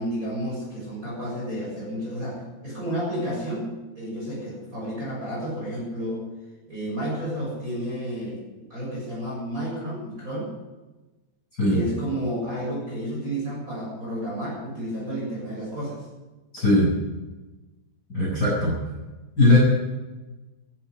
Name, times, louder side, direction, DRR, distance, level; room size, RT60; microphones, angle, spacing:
voice 1, 0.0-3.7 4.0-6.2 6.7-8.4 8.7-10.5 11.7-16.1, equal, 15° right, -5 dB, 7.3 m, -31 dB
voice 2, 16.5-16.9 18.1-18.7 19.4-19.6, left 2 dB, 20° left, -6 dB, 7.0 m, -19 dB
15.5 x 12.0 x 7.9 m, 1.1 s
omnidirectional pair, 5.5 m